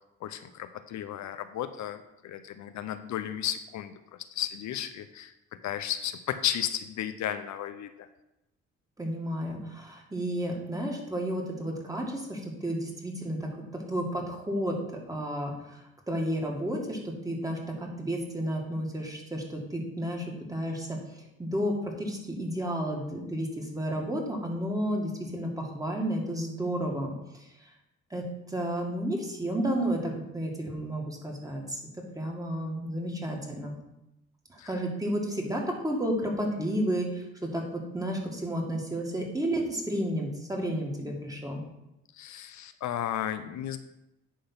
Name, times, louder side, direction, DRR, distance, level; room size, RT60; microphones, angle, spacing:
voice 1, 0.2-3.9 4.3-5.3 5.6-8.1 34.6-34.7 42.2-43.8, left 10 dB, 70° left, 10 dB, 0.6 m, -34 dB
voice 2, 9.0-21.0 21.4-27.7 28.1-31.8 32.2-33.8 34.5-41.6, right 1 dB, 10° right, 0 dB, 2.0 m, -32 dB
10.5 x 3.8 x 5.7 m, 0.90 s
cardioid pair, 90°, 30 cm